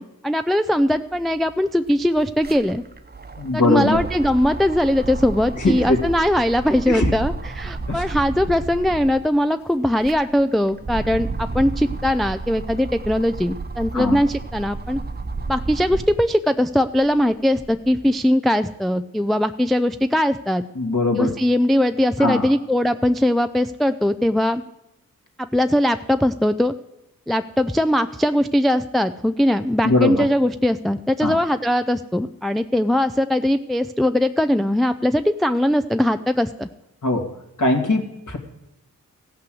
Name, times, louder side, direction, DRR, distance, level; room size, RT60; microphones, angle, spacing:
voice 1, 0.0-2.8 3.5-15.0 15.5-20.6 21.2-24.6 25.4-26.7 27.3-36.7, left 1 dB, ahead, 9 dB, 0.4 m, -20 dB
sound 1, 1.1-1.2 1.5-9.3 9.8-16.3 16.8-17.9, right 3 dB, 25° right, 1.0 m, -32 dB
voice 2, 3.4-4.0 5.5-6.1 6.9-7.1 7.9-8.0 13.9-14.2 20.7-21.3 22.2-22.5 29.8-30.3 31.2-31.4 37.0-37.3 37.6-38.4, left 2 dB, 55° left, 3 dB, 2.3 m, -20 dB
14.5 x 5.8 x 7.7 m, 0.91 s
cardioid pair, 60°, 35 cm